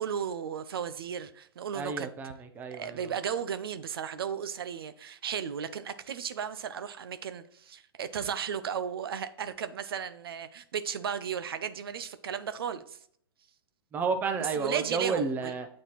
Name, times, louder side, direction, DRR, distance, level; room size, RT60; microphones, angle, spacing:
voice 1, 0.0-2.1 2.7-13.0 14.6-15.5, right 8 dB, 70° right, 0.5 m, -35 dB
voice 2, 1.7-3.2 13.9-15.7, right 5 dB, 15° right, 0.5 m, -31 dB
8.1 x 4.2 x 3.0 m
hypercardioid pair, 125°, 13 cm